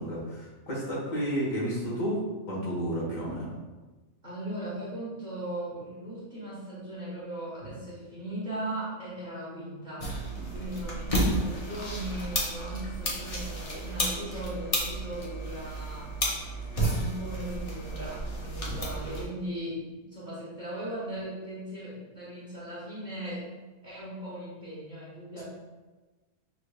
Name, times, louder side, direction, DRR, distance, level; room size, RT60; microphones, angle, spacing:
voice 1, 0.0-2.2 2.5-3.6 7.6-7.7 10.4-10.5, equal, 65° left, -6 dB, 1.7 m, -31 dB
voice 2, 4.2-10.1 10.5-16.1 16.9-23.5 23.8-25.4, right 1 dB, 35° right, -9 dB, 1.4 m, -38 dB
sound 1, 10.0-19.2, right 1 dB, 35° left, 0.6 m, -32 dB
5.8 x 3.3 x 2.3 m, 1.2 s
omnidirectional pair, 1.5 m